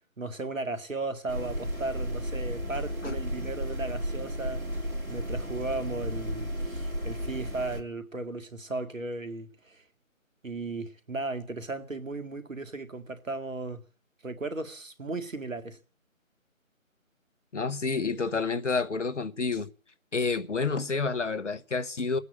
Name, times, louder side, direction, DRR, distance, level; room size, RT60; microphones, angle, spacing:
voice 1, 0.2-4.6 5.1-9.8 10.4-13.8 14.2-15.8, right 2 dB, 70° right, 2.1 m, -36 dB
sound 1, 1.3-7.8, equal, 85° right, 2.9 m, -33 dB
voice 2, 17.5-19.7 20.1-22.2, left 4 dB, 60° left, 1.3 m, -29 dB
18.0 x 9.5 x 8.5 m
figure-of-eight pair, 160°, 41 cm